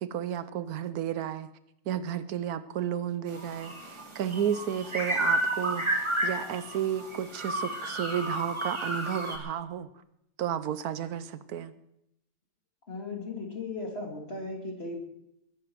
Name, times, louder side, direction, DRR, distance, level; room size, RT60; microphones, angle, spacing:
voice 1, 0.0-1.5 1.9-9.9 10.4-11.7, right 9 dB, 80° right, 14 dB, 1.2 m, -32 dB
sound 1, 3.3-9.4, right 1 dB, 20° right, 2.2 m, -31 dB
voice 2, 12.9-15.0, left 3 dB, 40° left, 1 dB, 2.7 m, -36 dB
21.0 x 11.0 x 4.6 m, 0.80 s
omnidirectional pair, 1.6 m